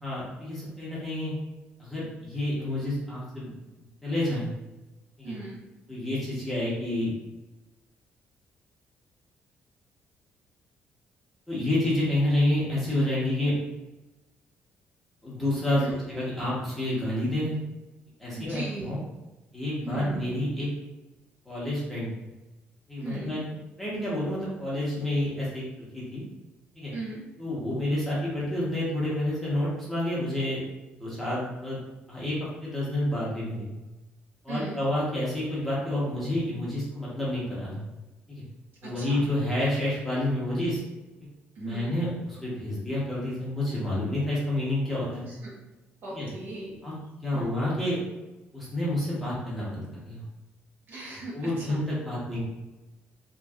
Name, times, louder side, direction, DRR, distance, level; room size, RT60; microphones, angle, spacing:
voice 1, 0.0-1.3 1.8-3.5 4.0-4.5 5.2-5.3 5.9-7.1 11.5-13.5 15.2-17.6 18.2-19.0 19.5-20.7 21.4-22.1 22.9-23.4 23.8-26.2 26.8-26.9 27.4-30.6 31.0-31.8 32.1-33.7 34.4-37.8 38.3-38.4 38.8-40.8 41.6-45.3 46.1-46.3 46.8-48.0 48.5-50.2 51.3-52.4, left 1 dB, ahead, -9 dB, 1.0 m, -29 dB
voice 2, 5.2-5.6 15.7-15.9 18.3-19.0 19.8-20.2 23.0-23.3 26.9-27.2 34.5-34.8 38.8-39.3 41.6-41.9 45.3-45.5 46.0-46.8 47.3-47.5 50.9-51.8, right 2 dB, 55° right, -5 dB, 0.8 m, -37 dB
2.9 x 2.7 x 2.4 m, 1.1 s
cardioid pair, 160°, 4 cm